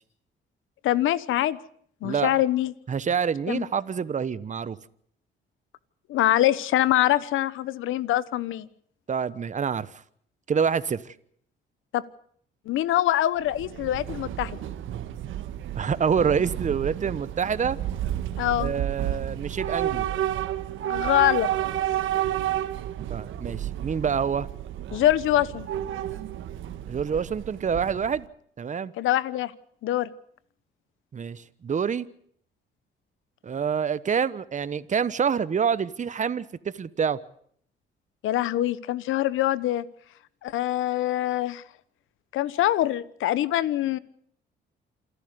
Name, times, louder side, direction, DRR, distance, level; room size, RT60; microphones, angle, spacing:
voice 1, 0.8-1.6 2.0-2.7 3.5-3.6 6.1-8.7 11.9-12.0 12.7-14.6 18.4-18.7 20.9-21.5 24.9-25.7 29.0-29.5 29.8-30.1 38.2-39.8 40.4-41.6 42.3-44.0, left 13 dB, 85° left, 17 dB, 1.1 m, -24 dB
voice 2, 2.9-4.8 9.1-10.0 10.5-11.1 15.7-17.8 18.6-20.1 23.1-24.5 26.9-28.3 28.6-28.9 31.1-32.1 33.4-37.2, right 7 dB, 40° right, 16 dB, 1.1 m, -27 dB
Train / Subway metro underground, 13.4-28.3, right 12 dB, 80° right, 1.7 m, -31 dB
27.5 x 11.5 x 9.7 m, 0.65 s
cardioid pair, 90°, 20 cm